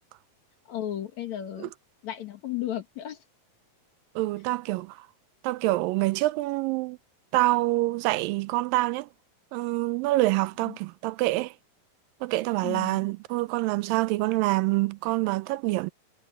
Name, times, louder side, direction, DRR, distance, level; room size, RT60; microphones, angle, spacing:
voice 1, 0.7-1.7 2.0-3.2 10.7-10.8 12.6-13.0, left 12 dB, 60° left, 2.7 m, -34 dB
voice 2, 4.2-5.1 5.4-7.0 7.3-9.1 9.5-11.5 12.2-15.9, right 19 dB, 90° right, 2.3 m, -26 dB
omnidirectional pair, 3.9 m